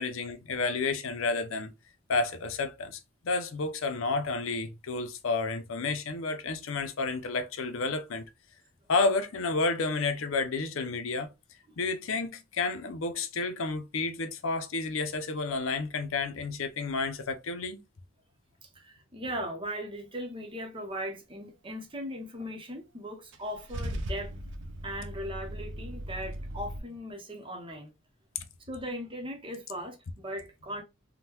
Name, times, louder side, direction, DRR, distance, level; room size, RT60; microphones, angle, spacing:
voice 1, 0.0-1.7 2.1-8.2 8.9-11.3 11.8-17.8 28.4-28.5, left 3 dB, 85° left, 0.6 m, -31 dB
voice 2, 18.6-24.3 24.8-27.9 28.7-30.8, equal, 25° right, 0.7 m, -38 dB
Car / Engine starting / Idling, 23.3-26.8, right 1 dB, 65° right, 0.5 m, -38 dB
3.6 x 2.1 x 2.9 m
head